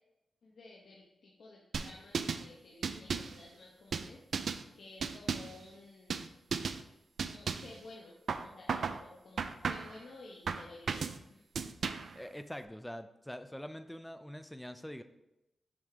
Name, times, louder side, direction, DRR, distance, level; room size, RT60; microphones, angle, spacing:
voice 1, 0.4-4.2 4.8-6.3 7.2-11.4, left 2 dB, 70° left, -3 dB, 1.0 m, -53 dB
sound 1, 1.7-2.5 2.8-3.4 3.9-4.6 5.0-5.6 6.1-6.3 6.5-6.8 7.2-7.8 8.3-9.0 9.4-10.0 10.5-11.2 11.6-12.2, right 5 dB, 70° right, 0.4 m, -35 dB
voice 2, 12.1-15.0, equal, 5° left, 10 dB, 0.3 m, -44 dB
7.2 x 3.4 x 4.9 m, 0.89 s
wide cardioid pair, 135°, 0 cm